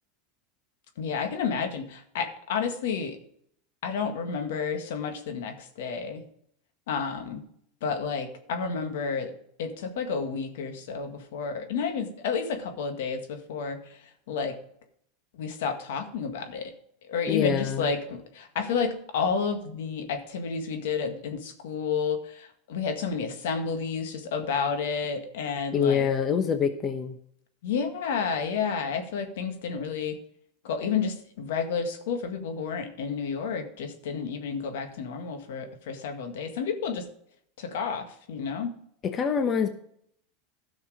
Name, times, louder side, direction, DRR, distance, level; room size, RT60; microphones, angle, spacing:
voice 1, 1.0-3.2 3.8-6.2 6.9-7.4 7.8-9.3 9.6-13.8 14.3-14.6 15.4-16.7 17.1-26.1 27.6-30.2 30.6-37.0 37.6-38.7, left 5 dB, 80° left, 7 dB, 1.8 m, -30 dB
voice 2, 17.3-17.9 25.7-27.2 39.0-39.7, left 7 dB, 30° left, 8 dB, 1.0 m, -25 dB
12.5 x 6.4 x 5.0 m, 0.68 s
supercardioid pair, 130°, 0 cm